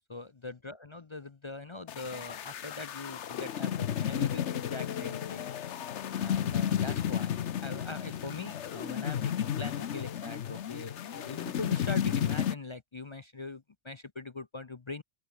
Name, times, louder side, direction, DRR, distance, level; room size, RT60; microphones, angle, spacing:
voice 1, 0.1-5.5 6.2-15.0, left 3 dB, 30° left, 0.6 m, -42 dB
sound 1, 1.9-12.5, left 9 dB, 85° left, 1.2 m, -33 dB
open air
omnidirectional pair, 1.1 m